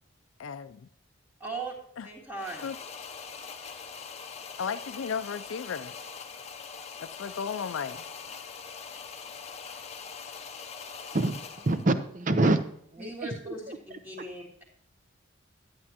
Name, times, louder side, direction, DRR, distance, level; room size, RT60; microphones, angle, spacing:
voice 1, 0.4-0.9 2.0-2.1 2.6-2.8 4.6-5.9 7.0-8.1, left 6 dB, 80° left, 11 dB, 0.4 m, -35 dB
voice 2, 1.4-1.7 2.0-2.7 12.4-12.5 13.0-13.6 14.0-14.6, right 2 dB, 10° right, -6 dB, 1.8 m, -38 dB
sound 1, 2.4-11.9, left 6 dB, 30° left, 0.6 m, -42 dB
voice 3, 11.1-12.6 12.9-14.0, right 2 dB, 40° right, 9 dB, 0.7 m, -27 dB
11.0 x 9.4 x 2.9 m, 0.67 s
head